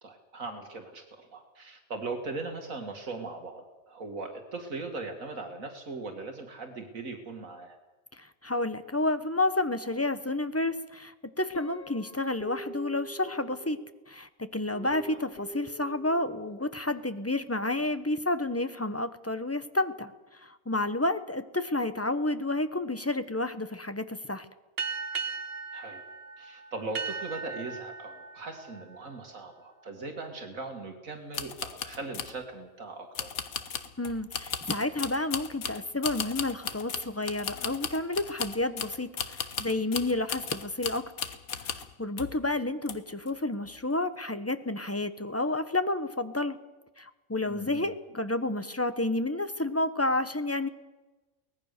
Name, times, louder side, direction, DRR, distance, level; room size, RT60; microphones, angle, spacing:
voice 1, 0.0-7.8 14.8-15.2 25.7-26.0 26.4-33.3 47.5-47.9, right 3 dB, 75° right, 4 dB, 2.3 m, -39 dB
voice 2, 8.2-13.8 14.1-20.1 20.4-24.5 34.0-41.4 41.7-46.6 47.0-50.7, left 2 dB, 10° left, 11 dB, 0.9 m, -30 dB
Guitar, 11.5-14.0 14.7-16.6, right 2 dB, 45° left, 1.4 m, -45 dB
sound 1, 24.8-29.9, right 5 dB, 45° right, 1.3 m, -38 dB
sound 2, 31.3-32.4 33.1-41.9 42.2-42.4 42.9-43.3 43.7-43.8, left 7 dB, 90° left, 1.6 m, -36 dB
24.0 x 19.0 x 6.7 m, 1.1 s
omnidirectional pair, 1.4 m